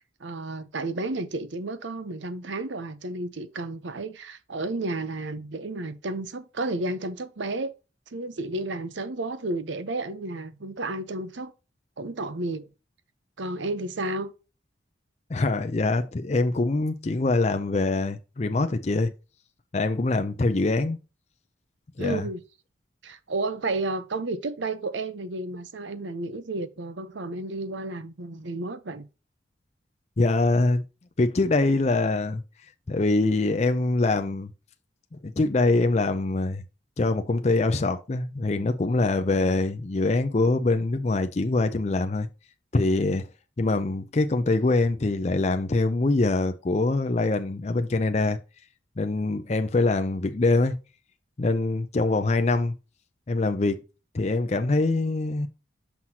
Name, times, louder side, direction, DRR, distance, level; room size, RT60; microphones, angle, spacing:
voice 1, 0.2-7.7 8.1-11.5 12.0-12.7 13.4-14.3 22.0-22.4 23.0-29.1, right 2 dB, 75° right, 0.8 m, -32 dB
voice 2, 15.3-19.1 19.7-21.0 22.0-22.3 30.2-30.8 31.2-32.4 32.9-34.5 35.2-36.6 37.0-42.3 42.7-43.3 43.6-48.4 49.0-50.7 51.4-52.7 53.3-53.8 54.1-55.5, left 2 dB, 35° left, 0.5 m, -24 dB
6.0 x 5.7 x 2.8 m
head